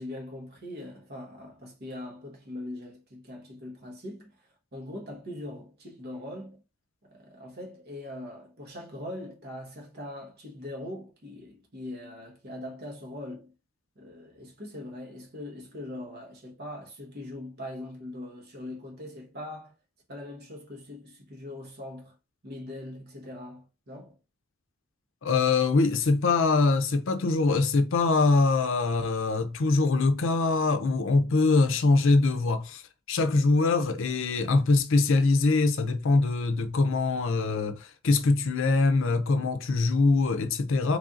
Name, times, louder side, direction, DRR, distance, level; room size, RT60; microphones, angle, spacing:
voice 1, 0.0-6.6 7.0-13.5 14.0-19.7 20.1-22.2 22.4-24.2, left 1 dB, 50° right, 1.2 m, -41 dB
voice 2, 25.2-32.8 33.1-41.0, left 3 dB, 65° left, 0.6 m, -23 dB
3.3 x 2.7 x 3.7 m
head